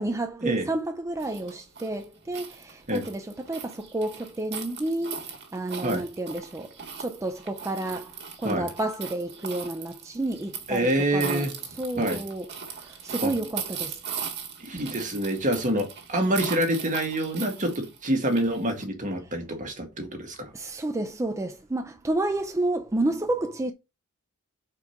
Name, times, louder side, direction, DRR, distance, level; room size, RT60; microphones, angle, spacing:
voice 1, 0.0-11.5 11.8-14.0 20.5-23.7, right 2 dB, 15° right, 0.4 m, -30 dB
sound 1, 1.2-18.8, right 6 dB, 50° right, 1.7 m, -39 dB
voice 2, 10.7-11.5 12.0-12.2 13.2-13.3 14.6-20.5, right 1 dB, 35° right, 1.6 m, -26 dB
4.9 x 4.5 x 5.8 m
head